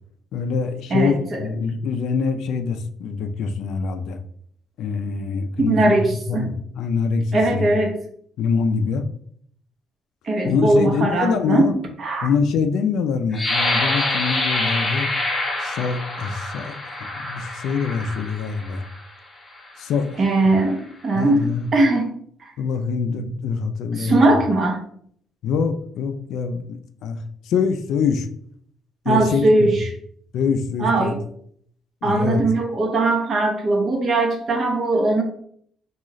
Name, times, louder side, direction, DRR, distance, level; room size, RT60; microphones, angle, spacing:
voice 1, 0.3-4.2 4.8-5.9 6.3-7.2 7.5-7.7 8.4-9.1 10.4-11.7 12.2-15.1 15.6-16.7 17.2-18.8 19.8-20.2 21.1-21.7 22.6-24.4 25.4-27.2 27.5-28.3 29.1-29.7 30.3-31.1 32.0-32.4, left 5 dB, 65° left, 7 dB, 0.3 m, -24 dB
voice 2, 0.9-1.4 5.7-6.5 7.3-8.0 10.2-11.7 12.0-12.3 20.2-22.1 22.4-22.5 23.9-24.8 29.1-29.9 30.8-31.2 32.0-35.2, right 2 dB, 35° right, 2 dB, 0.8 m, -20 dB
sound 1, 13.3-19.0 19.6-19.8 20.3-20.7, left 2 dB, 20° left, 0.6 m, -26 dB
3.6 x 2.3 x 3.0 m, 0.63 s
cardioid pair, 155°, 0 cm